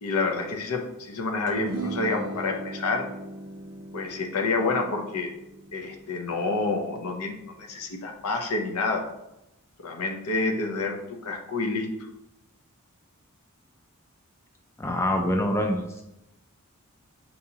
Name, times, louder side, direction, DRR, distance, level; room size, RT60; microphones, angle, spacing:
voice 1, 0.0-3.1 3.9-5.3 5.7-9.0 9.8-11.9, left 3 dB, 80° left, 4 dB, 0.6 m, -28 dB
sound 1, 1.5-8.0, right 2 dB, 75° right, 0.5 m, -39 dB
voice 2, 14.8-16.0, left 1 dB, 10° left, 3 dB, 0.3 m, -25 dB
5.4 x 2.8 x 2.7 m, 0.89 s
head